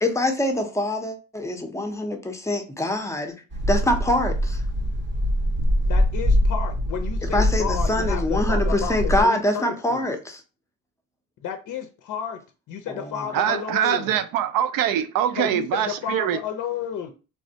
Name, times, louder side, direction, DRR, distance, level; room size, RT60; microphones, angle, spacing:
voice 1, 0.0-3.3 3.7-4.6 7.2-10.4 12.9-13.1, left 1 dB, 10° left, 0.5 m, -24 dB
sound 1, 3.5-9.2, equal, 35° right, 0.6 m, -23 dB
voice 2, 5.9-10.1 11.4-12.4 12.7-14.2 15.3-17.1, left 8 dB, 60° left, 0.5 m, -32 dB
voice 3, 13.3-16.4, right 10 dB, 75° right, 0.5 m, -23 dB
3.3 x 2.1 x 2.7 m
cardioid pair, 95°, 34 cm